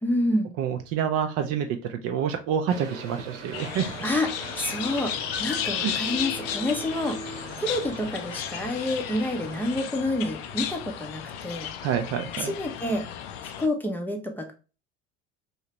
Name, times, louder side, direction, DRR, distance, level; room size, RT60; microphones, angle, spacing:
voice 1, 0.0-0.5 4.0-4.3 4.6-7.2 7.6-11.7 12.4-13.0 13.4-14.5, left 1 dB, 5° left, 2 dB, 0.6 m, -28 dB
voice 2, 0.6-3.9 5.8-6.0 11.8-12.5, right 8 dB, 40° right, 6 dB, 0.5 m, -28 dB
sound 1, 2.7-9.9, right 2 dB, 75° right, 1.0 m, -41 dB
sound 2, 3.5-13.7, left 9 dB, 55° left, 0.5 m, -34 dB
3.2 x 2.8 x 2.9 m, 0.33 s
figure-of-eight pair, 70°, 37 cm